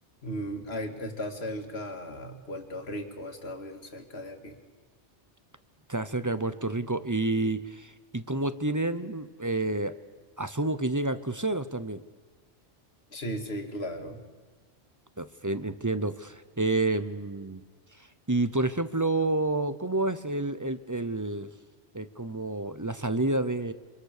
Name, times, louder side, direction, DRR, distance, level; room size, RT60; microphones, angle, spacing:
voice 1, 0.2-4.6 13.1-14.2, equal, 60° left, 5 dB, 2.5 m, -36 dB
voice 2, 5.9-9.9 10.4-12.0 15.2-17.6 18.3-21.5 21.9-23.7, right 2 dB, 20° right, 12 dB, 0.7 m, -29 dB
25.5 x 25.5 x 6.7 m, 1.4 s
omnidirectional pair, 1.2 m